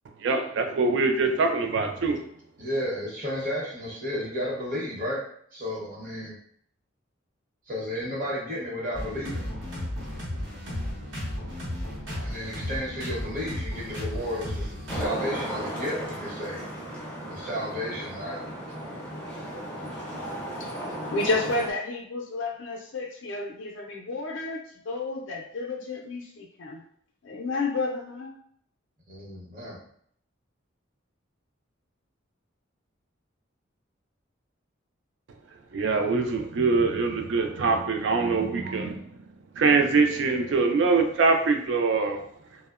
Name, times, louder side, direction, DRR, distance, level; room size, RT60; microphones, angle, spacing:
voice 1, 0.2-2.2 35.7-39.1 39.5-42.2, right 4 dB, 65° right, 5 dB, 0.4 m, -23 dB
voice 2, 2.6-5.2 5.5-6.3 7.7-9.5 12.2-16.6 17.3-18.4 29.1-29.8, equal, 45° right, -4 dB, 0.8 m, -32 dB
sound 1, 8.9-15.1, left 1 dB, 80° right, 0.8 m, -34 dB
Traffic noise roadway noise, 14.9-21.7, right 1 dB, 5° left, 0.4 m, -35 dB
voice 3, 21.1-26.8 27.2-28.3, left 3 dB, 75° left, 0 dB, 0.4 m, -31 dB
2.7 x 2.0 x 2.3 m, 0.65 s
head